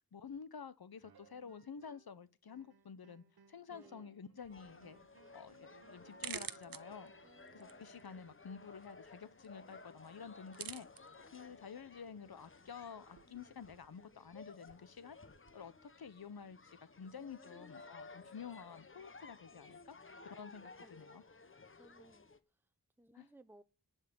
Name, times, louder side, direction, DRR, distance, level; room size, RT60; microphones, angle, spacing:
voice 1, 0.1-5.0 5.3-7.1 7.5-10.9 11.3-15.2 15.5-20.0 20.2-21.2 23.1-23.3, left 6 dB, 80° left, 1.0 m, -50 dB
sound 1, 1.0-2.2 2.5-8.4, right 6 dB, 85° right, 1.0 m, -65 dB
voice 2, 3.7-4.2 7.2-7.9 17.2-17.8 20.8-21.4 21.7-23.6, right 1 dB, 5° right, 0.8 m, -64 dB
sound 2, 4.4-15.6, right 8 dB, 65° right, 0.7 m, -53 dB
sound 3, 4.5-22.4, left 3 dB, 35° left, 1.0 m, -57 dB
11.0 x 5.6 x 8.4 m
wide cardioid pair, 65°, 37 cm